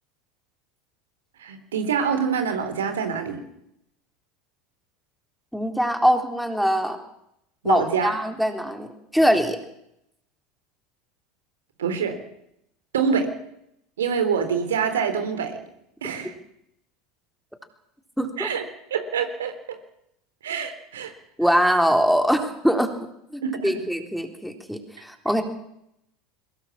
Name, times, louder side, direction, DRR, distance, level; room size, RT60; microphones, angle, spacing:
voice 1, 1.4-3.4 7.6-8.1 11.8-12.2 12.9-13.3 14.0-15.6 16.0-16.3 18.4-18.6 18.9-19.8 20.4-21.1 23.4-23.8, right 6 dB, 80° right, 7 dB, 3.7 m, -25 dB
voice 2, 5.5-7.0 7.6-9.6 18.2-18.5 21.4-22.9 23.3-25.4, equal, ahead, 5 dB, 3.7 m, -22 dB
22.5 x 20.5 x 7.3 m, 0.77 s
hypercardioid pair, 80°, 0 cm